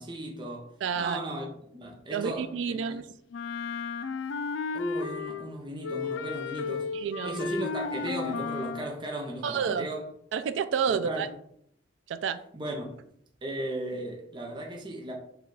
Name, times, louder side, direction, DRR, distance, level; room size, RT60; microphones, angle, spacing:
voice 1, 0.0-0.7 1.0-3.0 4.7-6.9 7.2-10.1 10.9-11.3 12.5-13.0 13.4-15.1, right 1 dB, 25° right, 0.6 m, -36 dB
voice 2, 0.8-1.2 2.1-3.0 6.9-7.4 9.4-9.9 10.3-11.3 12.1-12.4, right 7 dB, 80° right, 0.3 m, -29 dB
Wind instrument woodwind instrument, 3.3-5.5 5.8-8.9, left 4 dB, 85° left, 0.4 m, -33 dB
4.8 x 2.3 x 4.6 m
head